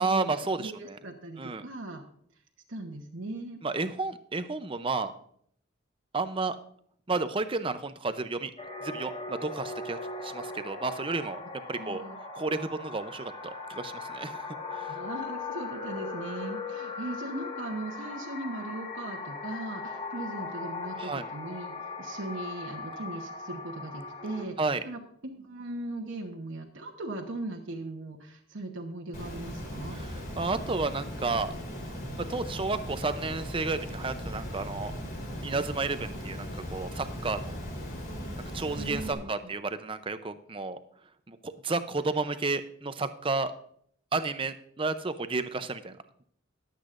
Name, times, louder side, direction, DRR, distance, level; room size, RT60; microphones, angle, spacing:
voice 1, 0.0-1.0 1.4-1.6 3.6-5.1 6.1-6.6 7.1-8.5 8.8-11.4 11.7-12.0 12.3-14.4 14.7-15.0 21.0-21.3 24.6-24.8 29.9-31.5 32.3-34.9 35.4-37.6 38.5-40.8 41.3-43.5 44.1-46.0, right 3 dB, 25° right, 10 dB, 0.6 m, -32 dB
voice 2, 0.6-2.0 2.7-3.6 11.8-12.2 14.9-24.6 24.8-25.0 25.3-30.0 38.8-39.5, right 2 dB, 65° right, 0 dB, 1.1 m, -39 dB
sound 1, 8.6-24.5, left 3 dB, 30° left, 1.3 m, -39 dB
Water, 29.1-39.1, equal, 45° left, 3.6 m, -38 dB
22.0 x 8.2 x 2.5 m, 0.65 s
head